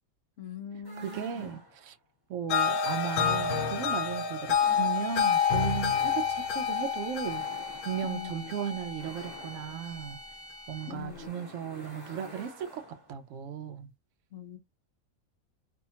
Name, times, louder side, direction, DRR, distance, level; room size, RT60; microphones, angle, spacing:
voice 1, 0.4-1.6 8.0-8.5 10.9-11.4 14.3-14.6, left 7 dB, 65° left, 0.8 m, -42 dB
sound 1, 0.8-1.9 2.7-3.8 4.5-13.2, equal, 15° left, 1.3 m, -50 dB
voice 2, 1.0-2.0 2.3-7.5 7.8-10.2 10.7-13.9, right 9 dB, 70° right, 0.8 m, -36 dB
sound 2, 2.5-9.6, left 7 dB, 85° left, 1.1 m, -29 dB
sound 3, 4.9-11.2, right 1 dB, 15° right, 0.6 m, -47 dB
2.7 x 2.2 x 2.8 m
omnidirectional pair, 1.5 m